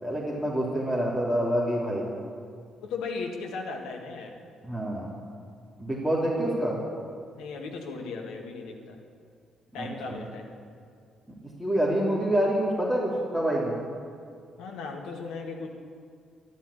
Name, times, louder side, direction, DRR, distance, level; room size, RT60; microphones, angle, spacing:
voice 1, 0.0-2.1 4.6-5.1 5.8-6.8 9.8-10.2 11.6-13.8, right 1 dB, ahead, -7 dB, 3.4 m, -27 dB
voice 2, 2.8-4.4 7.4-9.0 9.7-10.5 14.6-15.7, left 4 dB, 65° left, 2 dB, 2.0 m, -36 dB
12.0 x 11.5 x 8.6 m, 2.2 s
figure-of-eight pair, 40°, 0 cm